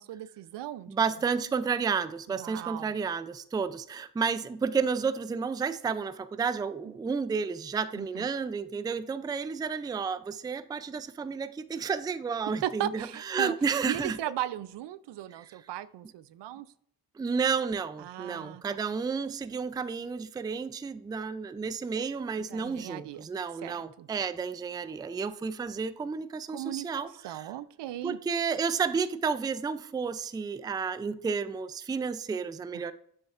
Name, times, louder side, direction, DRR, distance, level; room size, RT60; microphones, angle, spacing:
voice 1, 0.0-0.9 2.3-2.9 6.9-7.0 8.0-8.2 12.6-13.5 13.9-16.7 18.0-18.6 22.5-23.3 23.6-24.1 26.5-26.9 27.2-28.2, right 13 dB, 75° right, 17 dB, 0.5 m, -36 dB
voice 2, 0.9-14.2 15.3-15.6 17.2-27.5 28.0-32.9, right 5 dB, 10° right, 13 dB, 0.3 m, -31 dB
7.0 x 6.4 x 2.5 m, 0.66 s
cardioid pair, 75°, 43 cm